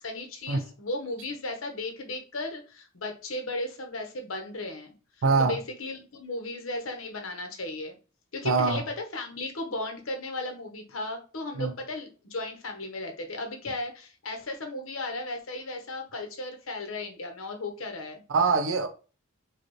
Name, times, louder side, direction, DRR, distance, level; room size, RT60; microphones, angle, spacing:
voice 1, 0.0-4.9 5.4-8.0 8.3-18.2, left 2 dB, 75° left, 1.0 m, -35 dB
voice 2, 5.2-5.6 8.4-8.8 11.5-11.7 18.3-18.9, right 4 dB, 70° right, 0.5 m, -23 dB
5.0 x 2.4 x 3.1 m
head